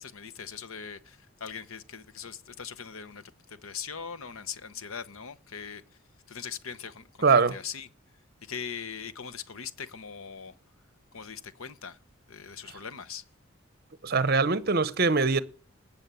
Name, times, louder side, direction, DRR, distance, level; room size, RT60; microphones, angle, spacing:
voice 1, 0.0-5.8 6.3-7.9 8.4-10.5 11.1-12.0 12.3-13.2, left 7 dB, 75° left, 0.9 m, -41 dB
voice 2, 7.2-7.6 12.7-12.8 14.0-15.4, right 4 dB, 45° right, 0.7 m, -23 dB
19.5 x 7.2 x 6.9 m
head